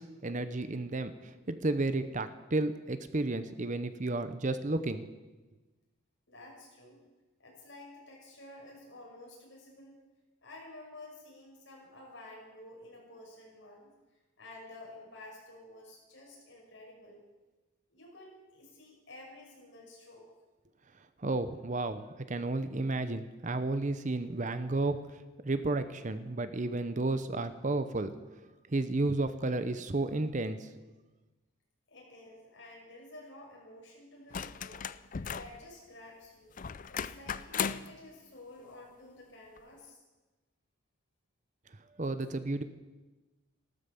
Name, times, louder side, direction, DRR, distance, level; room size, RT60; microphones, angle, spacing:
voice 1, 0.0-5.1 21.2-28.1 28.7-30.7 42.0-42.6, right 2 dB, 35° right, 11 dB, 0.7 m, -32 dB
voice 2, 6.3-7.0 7.4-10.0 10.4-13.9 14.4-17.2 17.9-20.3 31.9-36.5 36.9-40.0, left 1 dB, 55° left, -2 dB, 6.0 m, -51 dB
sound 1, 34.3-35.6 36.6-37.9 39.6-39.7, left 7 dB, 40° left, 0.4 m, -36 dB
15.0 x 13.0 x 7.0 m, 1.2 s
head